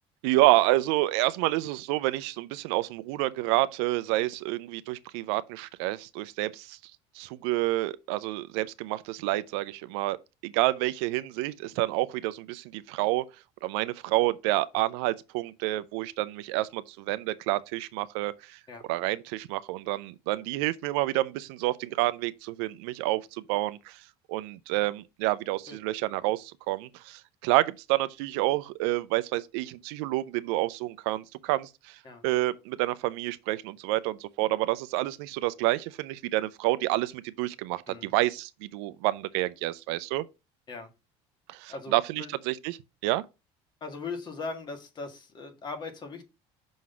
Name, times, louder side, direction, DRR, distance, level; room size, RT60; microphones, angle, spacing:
voice 1, 0.2-6.8 7.2-10.2 10.4-13.2 13.6-18.6 18.9-24.0 24.3-32.0 32.2-40.2 41.5-42.8 43.0-43.2, right 18 dB, 90° right, 0.5 m, -28 dB
voice 2, 41.7-42.3 43.8-46.2, left 4 dB, 35° left, 1.9 m, -39 dB
6.2 x 4.0 x 5.7 m
cardioid pair, 125°, 14 cm